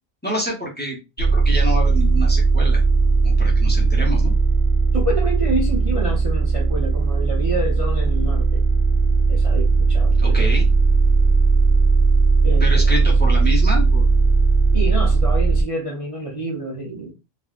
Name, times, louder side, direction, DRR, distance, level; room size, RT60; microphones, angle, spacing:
voice 1, 0.2-2.8 3.2-4.3 10.2-10.6 12.6-14.0, equal, 10° left, 0.8 m, -27 dB
sound 1, 1.2-15.6, right 4 dB, 75° right, 0.8 m, -17 dB
voice 2, 4.9-8.6 9.3-10.5 12.4-13.0 14.7-17.1, right 2 dB, 40° right, 0.6 m, -28 dB
3.3 x 2.3 x 2.3 m
omnidirectional pair, 1.1 m